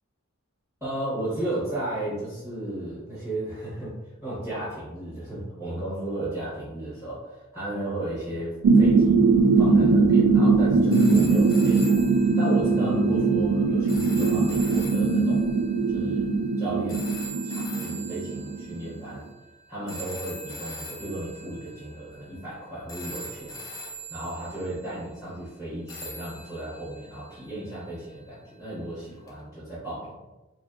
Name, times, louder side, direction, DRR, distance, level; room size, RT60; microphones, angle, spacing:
voice 1, 0.8-3.9 4.2-9.2 9.6-12.1 12.4-15.5 15.9-17.2 17.4-19.2 19.7-23.6 24.1-30.2, right 1 dB, 10° right, -11 dB, 1.1 m, -34 dB
sound 1, 8.6-19.1, right 4 dB, 80° right, 0.3 m, -21 dB
sound 2, 10.9-19.1 19.9-22.6 22.9-25.0 25.9-28.1 29.3-29.4, right 1 dB, 15° left, 0.4 m, -42 dB
2.9 x 2.5 x 2.3 m, 1.1 s
head